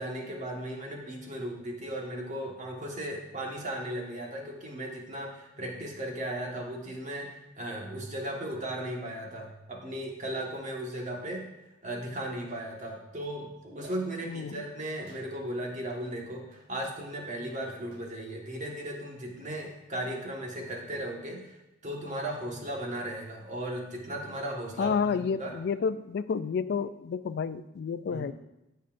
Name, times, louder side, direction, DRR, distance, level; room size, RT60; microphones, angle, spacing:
voice 1, 0.0-11.5 11.8-21.6 21.8-25.5 28.1-28.3, right 1 dB, 40° right, -1 dB, 1.5 m, -36 dB
sound 1, 11.3-11.4 12.5-13.1 13.8-14.4 15.1-15.6 16.5-16.8 17.9-18.2 19.5-19.9, right 2 dB, 80° right, 2.4 m, -56 dB
voice 2, 14.3-14.6 24.8-28.3, left 6 dB, 60° left, 13 dB, 0.3 m, -30 dB
15.0 x 5.6 x 2.6 m, 0.93 s
head